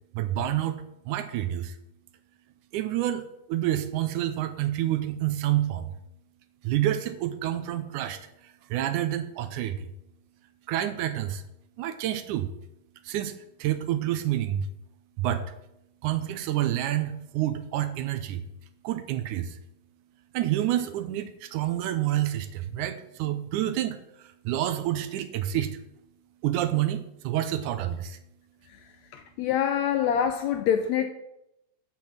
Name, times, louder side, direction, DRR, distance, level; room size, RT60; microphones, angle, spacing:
voice 1, 0.1-0.8 1.1-1.7 2.7-5.9 6.6-9.9 10.7-11.4 11.8-12.5 13.1-13.3 13.6-14.7 15.2-15.4 16.0-18.4 18.8-19.6 20.3-25.8 26.4-28.2, right 12 dB, 80° right, 2.1 m, -28 dB
voice 2, 29.1-31.1, left 9 dB, 80° left, 1.6 m, -25 dB
8.9 x 6.0 x 7.2 m
omnidirectional pair, 3.7 m